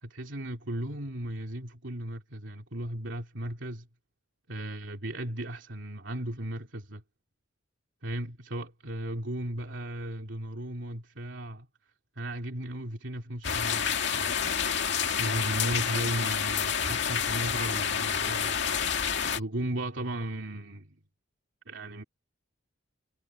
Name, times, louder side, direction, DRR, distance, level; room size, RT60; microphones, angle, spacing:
voice 1, 0.0-3.9 4.5-7.0 8.0-11.7 12.2-14.4 15.2-18.6 19.2-20.8 21.7-22.0, right 1 dB, 70° right, 2.9 m, -36 dB
sound 1, 13.4-19.4, left 7 dB, 65° left, 2.3 m, -28 dB
head